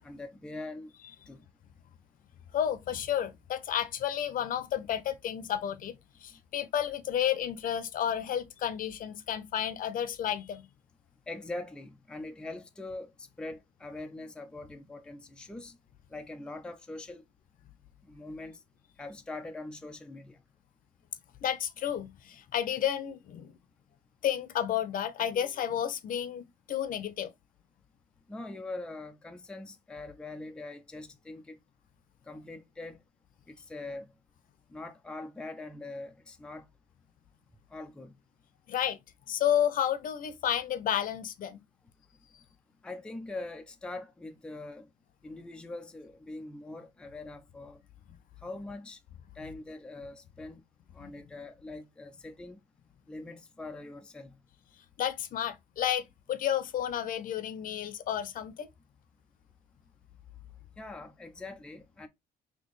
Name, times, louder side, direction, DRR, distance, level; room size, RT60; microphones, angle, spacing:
voice 1, 0.0-0.9 1.3-1.5 11.3-15.8 16.1-17.2 18.0-18.6 19.0-20.4 28.3-31.6 32.3-33.0 33.5-34.1 34.7-36.7 37.7-38.2 42.8-44.9 45.2-47.8 48.4-49.0 49.4-50.6 50.9-52.6 53.1-54.4 60.8-62.1, left 2 dB, 5° left, 0.5 m, -42 dB
voice 2, 2.5-5.9 6.2-10.7 21.4-23.5 24.2-27.3 38.7-39.0 39.3-41.6 51.0-51.1 55.0-58.7, left 10 dB, 55° left, 0.7 m, -31 dB
4.4 x 2.9 x 3.1 m
cardioid pair, 110°, 17 cm